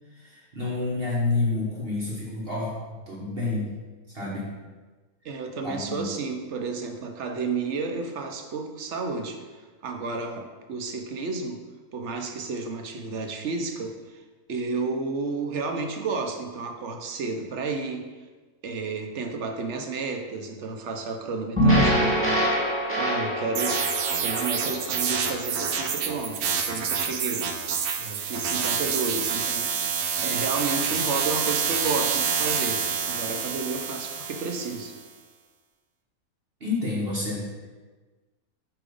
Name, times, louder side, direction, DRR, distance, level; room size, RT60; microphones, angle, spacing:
voice 1, 0.2-2.7 3.1-3.7 4.1-4.5 5.6-6.1 36.6-37.5, left 3 dB, 40° right, -5 dB, 1.4 m, -29 dB
voice 2, 5.2-9.4 9.8-11.6 11.9-14.2 14.5-18.1 18.6-23.8 24.2-27.5 28.0-29.7 30.2-35.0, right 4 dB, 60° right, 5 dB, 0.9 m, -31 dB
sound 1, 21.6-25.9, equal, 10° right, 2.1 m, -24 dB
sound 2, 23.5-34.9, right 6 dB, 85° right, 1.2 m, -28 dB
8.4 x 3.0 x 5.2 m, 1.3 s
omnidirectional pair, 1.5 m